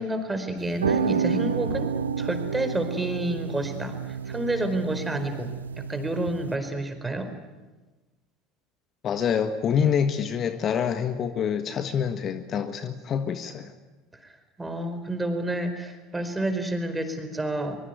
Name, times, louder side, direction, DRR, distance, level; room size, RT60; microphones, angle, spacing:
voice 1, 0.0-3.9 4.3-7.3 14.2-14.3 14.6-17.8, right 1 dB, 10° right, 8 dB, 4.7 m, -29 dB
sound 1, 0.6-6.6, right 6 dB, 85° right, 0.7 m, -30 dB
voice 2, 9.0-13.7, left 7 dB, 40° left, 9 dB, 1.5 m, -26 dB
24.0 x 22.5 x 9.3 m, 1.2 s
figure-of-eight pair, 70°, 0 cm